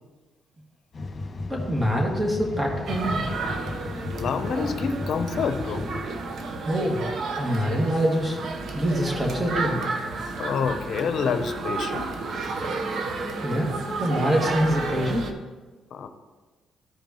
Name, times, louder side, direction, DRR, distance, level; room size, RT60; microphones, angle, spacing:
sound 1, 0.9-6.0, left 2 dB, 40° left, 1.6 m, -35 dB
voice 1, 1.5-3.3 6.6-7.1 7.4-8.4 8.7-9.8 13.4-13.7 14.0-15.3, equal, 20° right, -1 dB, 2.1 m, -25 dB
sound 2, 2.9-15.3, right 3 dB, 60° right, 0.9 m, -32 dB
voice 2, 4.1-5.9 10.4-12.1 15.9-16.1, left 6 dB, 65° left, 8 dB, 0.6 m, -27 dB
14.5 x 5.2 x 3.0 m, 1.3 s
cardioid pair, 90°, 0 cm